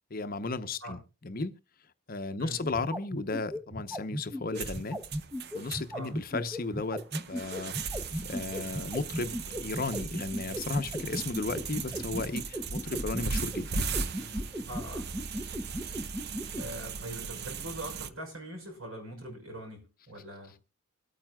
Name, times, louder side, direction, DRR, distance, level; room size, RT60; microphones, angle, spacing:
voice 1, 0.1-1.5 2.1-5.0 5.5-13.8, left 3 dB, 40° left, 11 dB, 0.8 m, -35 dB
sound 1, 2.6-16.6, equal, 10° right, 0.7 m, -35 dB
sound 2, 4.5-18.1, right 5 dB, 50° right, 0.7 m, -38 dB
voice 2, 14.7-15.1 16.5-20.5, right 1 dB, 75° right, 4 dB, 6.0 m, -42 dB
24.5 x 8.9 x 2.3 m, 0.29 s
head